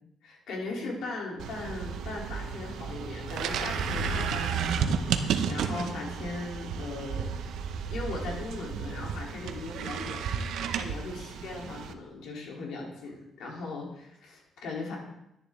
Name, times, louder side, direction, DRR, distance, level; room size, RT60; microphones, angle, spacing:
voice 1, 0.2-7.3 7.9-15.0, left 3 dB, 70° left, -2 dB, 3.4 m, -38 dB
sound 1, 1.4-11.9, right 7 dB, 70° right, 0.8 m, -32 dB
sound 2, 3.3-6.3, left 8 dB, 50° left, 4.4 m, -42 dB
11.0 x 10.0 x 3.8 m, 0.82 s
cardioid pair, 175°, 0 cm